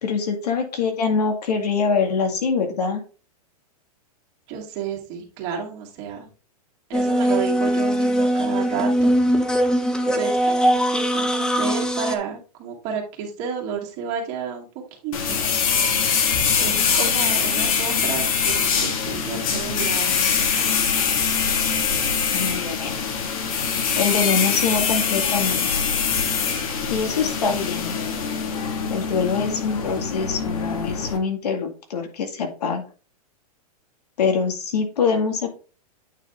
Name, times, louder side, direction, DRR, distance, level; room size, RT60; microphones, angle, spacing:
voice 1, 0.0-3.0 22.3-23.0 24.0-25.7 26.9-28.0 28.9-32.8 34.2-35.6, left 5 dB, 90° left, 4 dB, 2.1 m, -24 dB
voice 2, 4.5-6.3 6.9-9.2 10.0-14.7 15.0-15.4 16.6-20.7, right 6 dB, 35° right, -1 dB, 2.3 m, -31 dB
sound 1, 6.9-12.2, equal, 5° left, 0.5 m, -21 dB
sound 2, 15.1-31.2, left 6 dB, 60° left, 1.8 m, -23 dB
8.9 x 4.1 x 3.7 m, 0.35 s
supercardioid pair, 150°, 20 cm